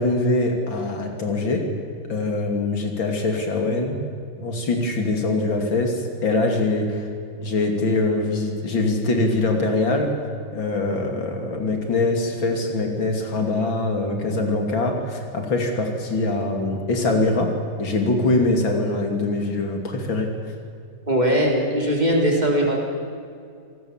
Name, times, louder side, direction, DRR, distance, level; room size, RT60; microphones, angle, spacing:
voice 1, 0.0-1.6 2.1-4.0 4.4-7.1 7.4-10.1 10.5-17.5 17.8-20.3, left 2 dB, 80° left, 3 dB, 3.5 m, -23 dB
voice 2, 21.1-22.8, equal, 20° right, -1 dB, 3.9 m, -20 dB
28.0 x 18.5 x 7.4 m, 2.3 s
omnidirectional pair, 2.1 m